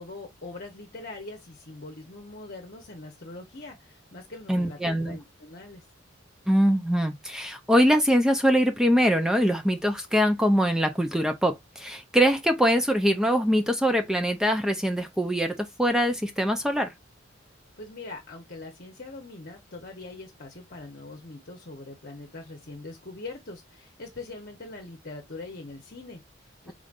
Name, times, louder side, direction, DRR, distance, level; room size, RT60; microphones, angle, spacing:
voice 1, 0.0-4.8 5.0-5.8 17.8-26.7, left 2 dB, 45° left, 1.0 m, -42 dB
voice 2, 4.5-5.2 6.5-16.9, equal, 5° right, 0.5 m, -23 dB
5.0 x 3.8 x 2.5 m
head